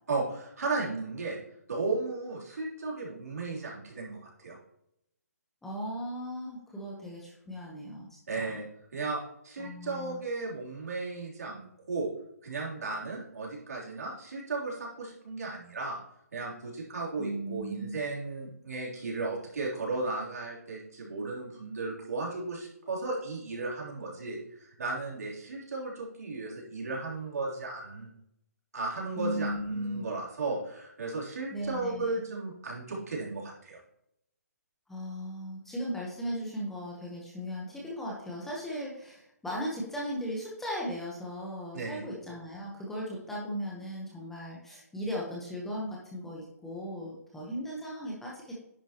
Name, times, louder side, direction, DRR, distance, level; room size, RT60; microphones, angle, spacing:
voice 1, 0.1-1.4 1.7-4.2 4.4-4.6 8.3-8.6 8.9-9.2 9.4-12.1 12.4-16.0 16.3-28.1 28.7-33.8 41.7-42.0, right 3 dB, 65° right, -4 dB, 3.1 m, -35 dB
voice 2, 5.6-8.1 8.3-8.6 9.6-10.2 17.2-18.0 29.2-30.1 31.5-32.2 34.9-48.5, equal, 5° left, -4 dB, 0.9 m, -37 dB
10.0 x 6.3 x 2.9 m, 0.77 s
hypercardioid pair, 165°, 9 cm